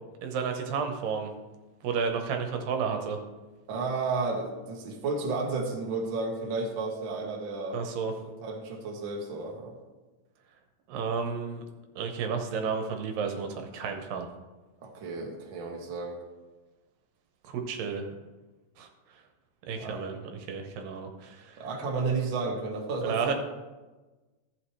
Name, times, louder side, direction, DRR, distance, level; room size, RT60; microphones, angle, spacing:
voice 1, 0.2-1.3 1.8-3.2 7.7-8.1 10.9-11.6 12.0-14.3 17.4-18.1 18.8-18.9 19.7-20.2 20.5-21.7 23.0-23.3, right 5 dB, 80° right, 4 dB, 2.7 m, -32 dB
voice 2, 3.7-7.8 8.4-9.7 14.8-16.2 19.7-20.0 21.6-23.3, right 3 dB, 50° right, 0 dB, 1.7 m, -32 dB
14.5 x 8.2 x 3.2 m, 1.2 s
omnidirectional pair, 4.0 m